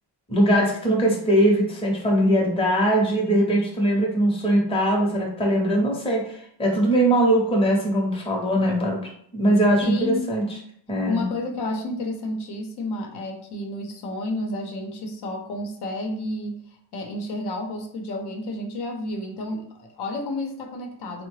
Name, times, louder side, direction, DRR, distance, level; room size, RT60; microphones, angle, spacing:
voice 1, 0.3-9.0 9.3-10.4 10.9-11.2, right 1 dB, 15° left, -2 dB, 0.7 m, -21 dB
voice 2, 9.8-10.3 11.0-21.3, left 2 dB, 65° left, 2 dB, 0.7 m, -31 dB
3.6 x 2.1 x 3.1 m, 0.66 s
cardioid pair, 160°, 42 cm